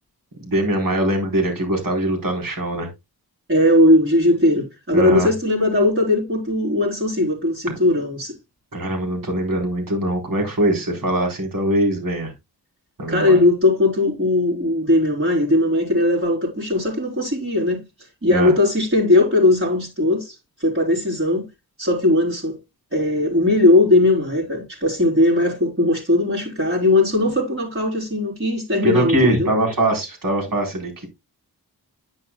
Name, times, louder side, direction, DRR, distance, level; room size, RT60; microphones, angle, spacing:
voice 1, 0.4-2.9 4.9-5.3 7.7-7.8 8.7-12.3 13.0-13.4 18.3-18.5 28.8-31.1, right 1 dB, 60° right, 4.2 m, -22 dB
voice 2, 3.5-8.4 13.1-17.8 18.2-21.5 21.8-22.6 22.9-29.5, left 2 dB, 35° right, 3.7 m, -18 dB
10.0 x 8.9 x 2.3 m
wide cardioid pair, 125°, 38 cm